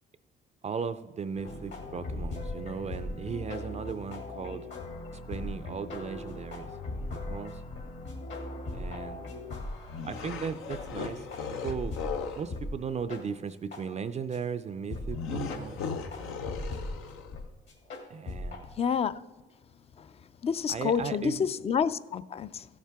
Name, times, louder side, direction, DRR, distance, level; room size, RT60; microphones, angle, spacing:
voice 1, 0.6-4.7 5.1-6.7 7.1-7.6 8.7-9.3 10.1-11.3 11.6-12.0 12.4-15.9 18.1-18.7 20.7-21.5, right 6 dB, 35° right, 0.4 m, -36 dB
sound 1, 1.4-12.1 12.5-12.7 13.1-13.2 13.7-13.8 14.3-14.4 14.9-15.1 15.5-15.6 16.1-16.9 17.3-17.4 17.7-18.6, left 2 dB, 65° left, 2.5 m, -39 dB
sound 2, 9.9-12.5 15.1-17.4, left 5 dB, 90° left, 0.8 m, -37 dB
voice 2, 18.8-19.2 20.4-22.6, left 7 dB, 30° left, 0.4 m, -28 dB
15.5 x 7.3 x 3.5 m
cardioid pair, 90°, 20 cm